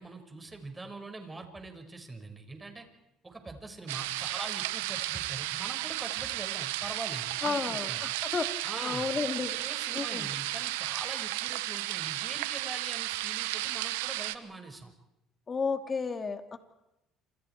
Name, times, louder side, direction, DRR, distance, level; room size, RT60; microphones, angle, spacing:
voice 1, 0.0-2.8 3.2-8.1 8.6-9.1 9.5-14.9, right 3 dB, 20° right, 5 dB, 5.6 m, -43 dB
sound 1, 3.9-14.4, right 16 dB, 90° right, 1.0 m, -34 dB
voice 2, 7.4-8.5 8.8-9.5 10.0-10.3 15.5-16.6, left 5 dB, 35° left, 7 dB, 2.7 m, -32 dB
28.0 x 26.5 x 4.7 m, 0.89 s
supercardioid pair, 75°, 0 cm